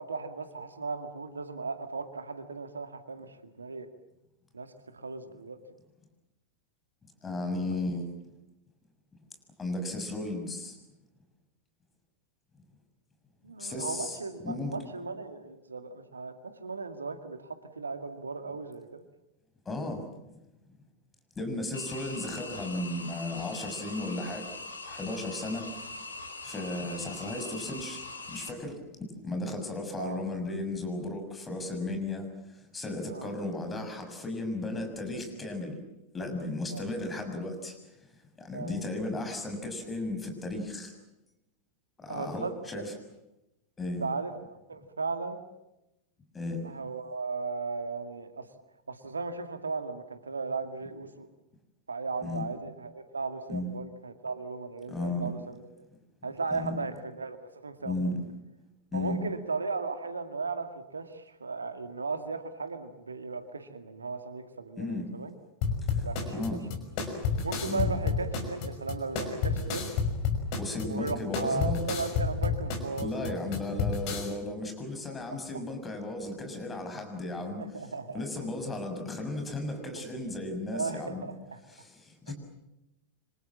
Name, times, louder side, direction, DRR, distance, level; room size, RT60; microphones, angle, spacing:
voice 1, 0.0-3.9 4.5-5.6 7.7-7.8 13.4-16.3 16.6-19.1 30.0-30.2 33.1-33.3 36.7-36.9 38.5-38.8 42.1-42.6 44.0-44.3 44.7-45.4 46.6-48.5 48.9-51.3 51.9-55.6 56.2-58.0 58.9-65.3 66.0-66.4 67.4-69.9 70.9-73.4 75.1-75.2 75.5-75.6 77.6-78.2 80.7-81.6 82.3-82.4, right 4 dB, 75° right, 9 dB, 2.1 m, -36 dB
voice 2, 7.2-8.1 9.6-10.8 13.6-14.7 19.6-20.0 21.4-24.5 24.8-26.1 26.4-28.8 29.2-35.8 36.1-37.8 38.4-40.9 42.0-42.9 43.8-44.0 46.3-46.6 52.2-52.4 53.5-53.7 54.9-55.3 56.5-56.7 57.8-58.2 58.9-59.2 64.8-65.0 65.9-66.0 66.3-66.8 67.7-67.9 70.6-71.8 73.0-77.9 78.1-81.3 81.7-82.3, left 2 dB, 15° left, 5 dB, 6.7 m, -35 dB
sound 1, 21.7-28.5, left 3 dB, 75° left, 3.1 m, -42 dB
sound 2, 65.6-74.3, left 5 dB, 45° left, 5.8 m, -30 dB
27.5 x 26.0 x 7.5 m, 0.93 s
figure-of-eight pair, 90°, 0 cm